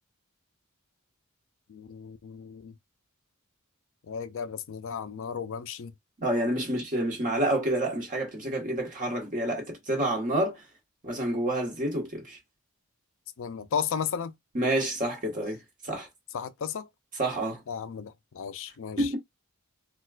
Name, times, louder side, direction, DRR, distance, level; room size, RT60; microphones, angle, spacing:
voice 1, 1.7-2.7 4.1-5.9 13.4-14.3 16.3-16.9 17.7-19.1, left 7 dB, 60° left, 0.4 m, -34 dB
voice 2, 6.2-10.6 11.0-12.4 14.5-15.6 15.8-16.1 17.2-17.6 19.0-19.2, right 1 dB, 35° right, 1.4 m, -28 dB
4.2 x 2.3 x 2.4 m
head